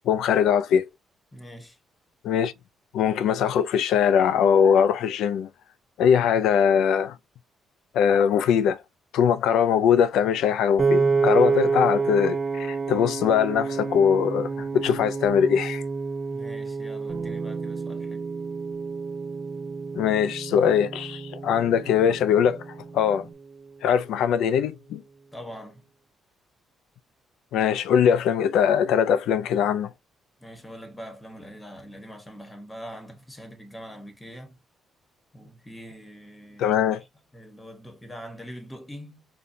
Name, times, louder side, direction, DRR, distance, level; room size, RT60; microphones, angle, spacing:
voice 1, 0.1-0.9 2.2-2.5 2.9-5.5 6.0-7.2 7.9-8.8 9.1-15.8 20.0-22.6 22.9-23.3 23.8-25.0 27.5-29.9 36.6-37.0, left 8 dB, 85° left, 0.4 m, -21 dB
voice 2, 1.3-1.8 16.3-18.2 25.3-25.9 30.4-34.6 35.3-36.7 37.3-39.3, equal, 15° left, 1.2 m, -43 dB
Piano, 10.8-23.0, right 4 dB, 35° right, 0.6 m, -28 dB
Bass guitar, 17.1-23.3, right 4 dB, 55° right, 1.2 m, -40 dB
5.1 x 2.3 x 2.6 m
cardioid pair, 90°, 0 cm